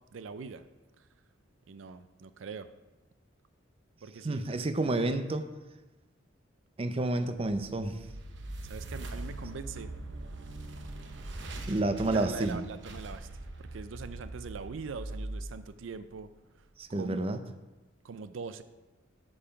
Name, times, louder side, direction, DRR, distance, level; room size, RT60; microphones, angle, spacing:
voice 1, 0.1-0.6 1.0-1.1 1.7-2.7 4.0-5.0 8.6-9.9 12.1-13.3 13.6-16.3 16.9-17.6 18.0-18.6, right 5 dB, 90° right, 12 dB, 0.5 m, -42 dB
voice 2, 4.2-5.4 6.8-8.1 11.7-12.7 16.8-17.4, right 2 dB, 30° right, 9 dB, 0.5 m, -30 dB
sound 1, 7.4-16.5, right 1 dB, 65° right, 0.9 m, -42 dB
8.4 x 5.5 x 5.7 m, 1.1 s
head